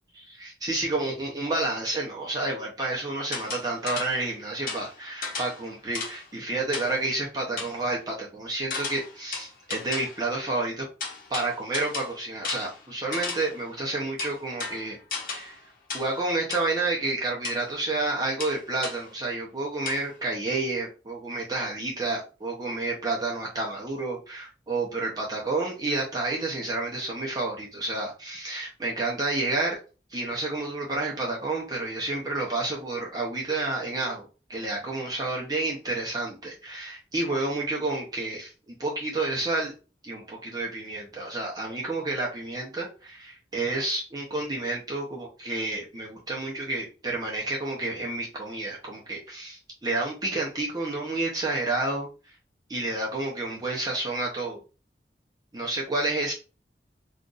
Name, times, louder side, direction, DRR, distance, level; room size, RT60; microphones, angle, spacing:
voice 1, 0.1-10.8 11.3-15.0 15.3-15.6 15.9-29.8 30.1-38.5 38.8-39.7 40.0-52.1 52.7-54.6 55.5-56.3, right 2 dB, 20° right, -3 dB, 0.7 m, -30 dB
sound 1, 3.3-4.3 4.7-6.3 6.7-7.1 7.6-7.8 8.7-10.3 11.0-13.6 14.2-15.6 15.9-16.2 16.5-16.7 17.4-17.6 18.4-19.1 19.9-20.0, left 4 dB, 50° left, 0.9 m, -35 dB
2.5 x 2.4 x 3.9 m, 0.32 s
head